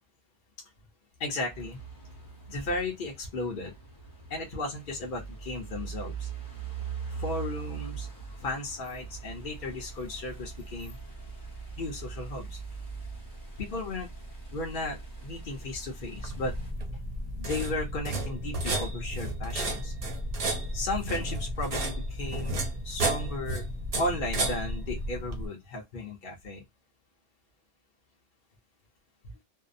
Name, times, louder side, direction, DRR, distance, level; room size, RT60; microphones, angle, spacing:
voice 1, 1.2-1.8 2.5-3.7 4.3-6.3 7.2-8.1 8.4-11.0 11.8-12.6 13.6-14.1 14.5-16.5 17.4-19.9 20.7-22.5 22.8-23.7 24.0-26.6 29.2-29.4, left 2 dB, 50° left, 0.9 m, -35 dB
sound 1, 1.5-16.7, right 5 dB, 20° left, 1.1 m, -41 dB
sound 2, 16.2-25.5, right 1 dB, 45° right, 0.5 m, -32 dB
2.7 x 2.0 x 2.5 m
omnidirectional pair, 1.2 m